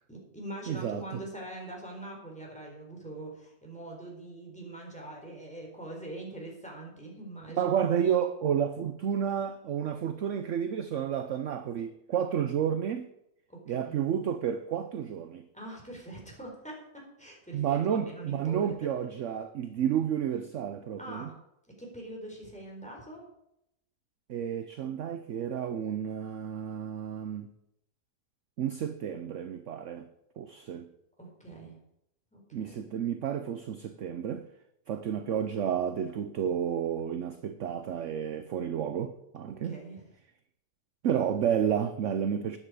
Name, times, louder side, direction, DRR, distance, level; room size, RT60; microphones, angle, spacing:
voice 1, 0.1-7.8 13.5-14.0 15.5-18.7 21.0-21.3 21.8-23.3 31.2-31.8 32.3-32.8 39.5-40.1, right 1 dB, 5° left, 4.2 m, -43 dB
voice 2, 0.7-1.2 7.6-13.1 13.7-15.4 17.5-21.3 24.3-27.5 28.6-30.1 30.4-30.9 32.5-34.4 34.9-39.8 41.0-42.6, right 8 dB, 60° right, 0.9 m, -31 dB
13.0 x 10.5 x 5.0 m
omnidirectional pair, 1.7 m